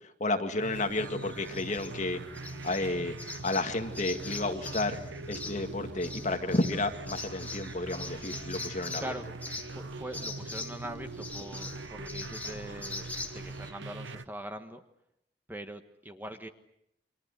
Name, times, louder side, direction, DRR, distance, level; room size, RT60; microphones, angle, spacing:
voice 1, 0.2-2.2 2.6-3.1 3.4-5.0 5.3-9.1, left 2 dB, 40° left, 5 dB, 2.0 m, -31 dB
sound 1, 0.6-14.2, right 3 dB, 85° right, 1.0 m, -43 dB
sound 2, 0.7-13.7, left 2 dB, 10° left, 2.2 m, -43 dB
voice 2, 9.0-9.3 9.7-14.8 15.5-16.5, right 1 dB, 10° right, 7 dB, 1.4 m, -42 dB
30.0 x 24.5 x 6.6 m, 0.77 s
head